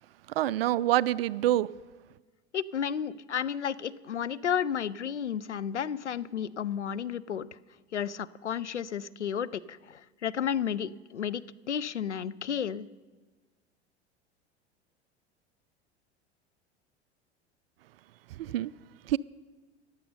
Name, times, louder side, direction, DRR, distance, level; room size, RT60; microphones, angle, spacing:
voice 1, 0.4-1.7 18.4-18.7 19.1-19.2, right 14 dB, 60° right, 0.4 m, -26 dB
voice 2, 2.5-7.5 7.9-12.9, left 8 dB, 85° left, 0.5 m, -32 dB
15.0 x 10.5 x 5.4 m
figure-of-eight pair, 80°, 34 cm